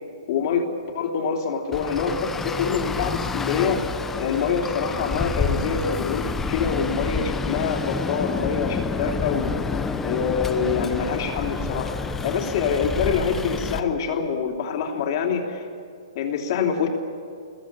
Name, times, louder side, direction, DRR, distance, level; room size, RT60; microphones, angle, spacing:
voice 1, 0.3-0.7 0.9-3.9 4.1-9.5 10.0-11.9 12.2-15.6 16.1-16.9, left 6 dB, 45° left, 2 dB, 3.4 m, -25 dB
Traffic noise roadway noise, 1.7-13.8, left 4 dB, 10° left, 0.9 m, -28 dB
27.5 x 21.5 x 6.9 m, 2.4 s
hypercardioid pair, 160°, 3 cm